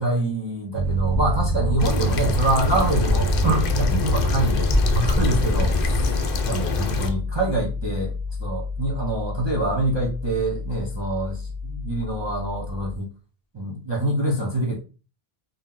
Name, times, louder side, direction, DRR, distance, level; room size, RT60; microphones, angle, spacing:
voice 1, 0.0-6.1 6.4-8.1 8.4-13.1 13.5-14.8, right 2 dB, 45° right, -2 dB, 0.3 m, -25 dB
Piano, 0.7-13.0, left 1 dB, 80° right, 0.9 m, -29 dB
sound 1, 0.8-6.1, left 1 dB, 5° right, 0.6 m, -25 dB
sound 2, 1.8-7.1, left 4 dB, 65° left, 0.7 m, -27 dB
2.7 x 2.0 x 3.6 m, 0.33 s
omnidirectional pair, 1.1 m